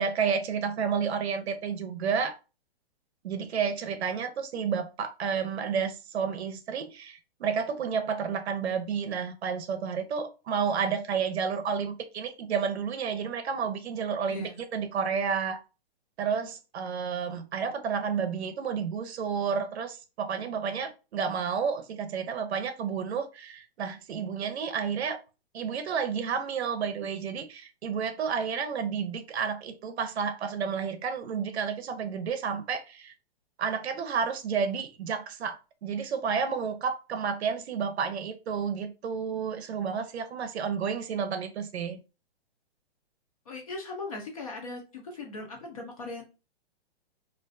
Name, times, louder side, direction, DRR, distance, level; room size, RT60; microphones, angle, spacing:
voice 1, 0.0-2.3 3.2-15.6 16.2-25.2 25.5-33.1 33.6-42.0, right 6 dB, 90° right, 0.6 m, -31 dB
voice 2, 14.3-14.6 43.5-46.2, left 2 dB, 35° left, 0.5 m, -39 dB
2.5 x 2.2 x 2.4 m
hypercardioid pair, 170°, 31 cm